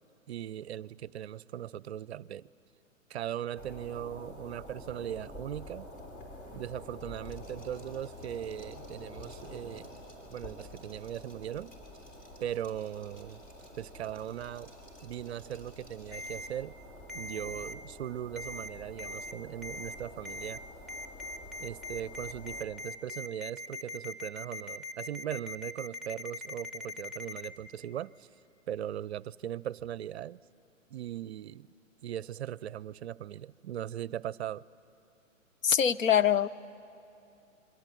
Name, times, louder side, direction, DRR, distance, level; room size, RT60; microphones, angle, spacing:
voice 1, 0.3-2.5 3.1-5.9 6.5-10.0 10.3-11.7 12.4-13.4 13.8-14.7 15.0-16.8 17.1-20.6 21.6-28.3 28.7-30.4 30.9-31.7 32.0-34.6, right 10 dB, 55° right, 0.5 m, -39 dB
sound 1, 3.5-22.7, left 1 dB, 40° left, 5.0 m, -48 dB
Liquid, 7.2-16.5, right 1 dB, 20° left, 4.7 m, -61 dB
Ringtone, 16.1-16.5 17.1-17.7 18.4-18.7 19.0-19.3 19.6-19.9 20.2-20.6 20.9-27.5, left 2 dB, ahead, 1.0 m, -41 dB
voice 2, 35.6-36.5, left 9 dB, 75° left, 0.9 m, -24 dB
27.5 x 23.0 x 9.1 m
hypercardioid pair, 125°, 40 cm